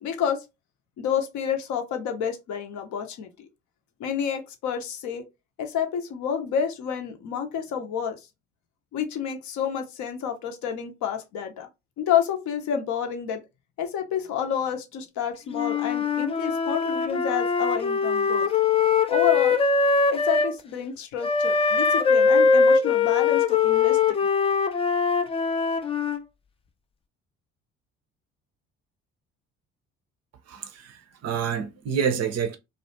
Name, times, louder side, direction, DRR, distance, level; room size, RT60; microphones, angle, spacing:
voice 1, 0.0-0.4 1.0-3.3 4.0-5.3 5.6-8.2 8.9-11.7 12.0-13.4 13.8-18.5 19.1-19.6 20.1-24.2, left 8 dB, 55° left, 0.6 m, -29 dB
Wind instrument woodwind instrument, 15.5-20.5 21.2-26.2, left 5 dB, 15° left, 0.3 m, -22 dB
voice 2, 30.5-32.6, right 7 dB, 45° right, 0.6 m, -28 dB
2.4 x 2.0 x 2.8 m
hypercardioid pair, 50°, 37 cm